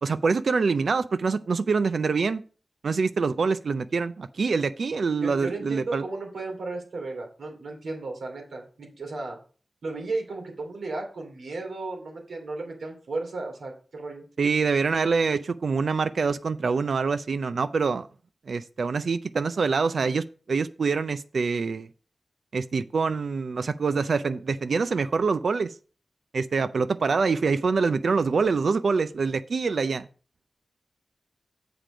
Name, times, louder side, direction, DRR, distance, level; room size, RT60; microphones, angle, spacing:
voice 1, 0.0-2.4 2.8-6.0 14.4-18.1 18.5-21.9 22.5-25.7 26.3-30.1, right 4 dB, 70° right, 0.4 m, -25 dB
voice 2, 5.2-9.4 9.8-14.2, right 3 dB, 85° right, 2.7 m, -34 dB
7.5 x 5.0 x 5.0 m
wide cardioid pair, 110°, 0 cm